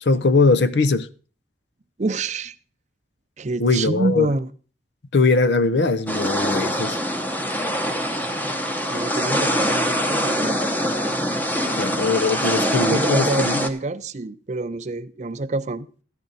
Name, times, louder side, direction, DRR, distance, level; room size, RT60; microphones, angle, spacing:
voice 1, 0.0-1.1 3.6-4.3 5.1-7.0 11.7-13.7, left 3 dB, 75° left, 0.6 m, -20 dB
voice 2, 2.0-2.5 3.4-4.5 7.8-8.3 8.9-10.8 12.9-15.9, right 3 dB, 40° right, 0.5 m, -27 dB
sound 1, 6.1-13.7, equal, 10° left, 0.8 m, -23 dB
13.5 x 10.0 x 4.0 m
head